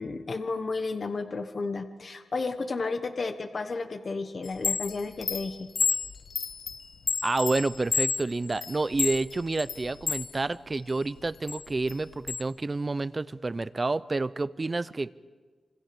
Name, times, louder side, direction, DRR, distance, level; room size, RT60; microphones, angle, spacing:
voice 1, 0.0-5.7, left 3 dB, 50° left, 8 dB, 1.3 m, -32 dB
Chime, 4.4-10.3 10.7-12.4, left 5 dB, 75° left, 1.1 m, -31 dB
voice 2, 7.2-15.1, right 3 dB, 30° right, 15 dB, 0.7 m, -29 dB
27.0 x 26.5 x 5.3 m, 1.4 s
wide cardioid pair, 100°, 0 cm